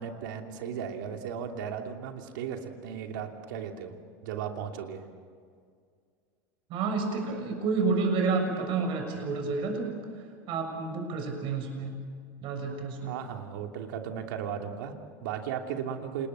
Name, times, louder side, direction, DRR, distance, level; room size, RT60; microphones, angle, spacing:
voice 1, 0.0-5.0 12.7-16.3, right 8 dB, 85° right, 4 dB, 2.8 m, -36 dB
voice 2, 6.7-10.1 10.5-11.9 12.4-13.1, right 4 dB, 55° right, 3 dB, 6.9 m, -29 dB
28.5 x 20.0 x 7.5 m, 2.1 s
supercardioid pair, 115°, 10 cm